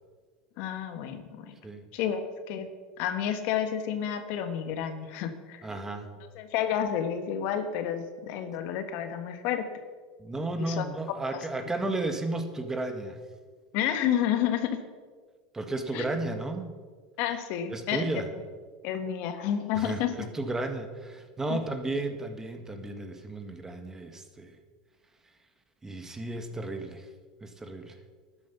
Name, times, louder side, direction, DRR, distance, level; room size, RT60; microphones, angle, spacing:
voice 1, 0.6-1.5 1.9-2.7 3.0-5.6 6.2-9.7 10.6-10.9 13.7-14.8 15.9-16.0 17.2-18.1 18.8-20.3 21.5-21.6, left 9 dB, 60° left, 9 dB, 1.4 m, -30 dB
voice 2, 5.6-6.1 10.2-13.2 15.5-16.7 17.7-18.3 19.7-24.6 25.8-27.1 27.4-28.0, right 2 dB, 15° right, 6 dB, 1.8 m, -33 dB
12.0 x 9.7 x 7.0 m, 1.5 s
hypercardioid pair, 100°, 4 cm